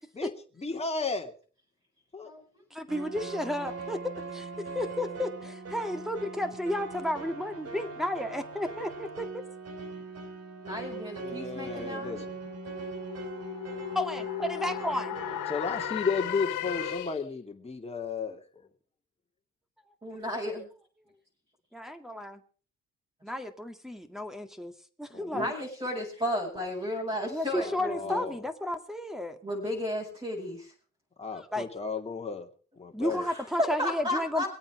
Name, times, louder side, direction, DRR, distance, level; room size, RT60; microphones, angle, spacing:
voice 1, 0.6-1.3 2.1-2.3 11.2-12.4 15.5-18.7 25.1-25.5 27.5-28.4 31.2-32.5 32.8-33.3, left 4 dB, 20° left, 2 dB, 2.6 m, -34 dB
voice 2, 2.7-4.0 4.3-4.5 4.7-9.4 11.6-11.9 13.9-15.1 21.7-22.4 23.2-24.7 25.0-25.5 27.3-29.4 31.5-31.7 32.9-34.4, left 1 dB, ahead, 4 dB, 2.0 m, -33 dB
sound 1, 2.9-16.9, right 4 dB, 55° right, 2.7 m, -41 dB
voice 3, 10.6-12.2 20.0-20.7 25.1-28.2 29.4-30.7 33.1-34.5, left 1 dB, 20° right, -4 dB, 6.6 m, -33 dB
sound 2, 11.2-17.4, left 15 dB, 85° left, 1.0 m, -37 dB
24.0 x 8.7 x 5.0 m, 0.41 s
cardioid pair, 90°, 30 cm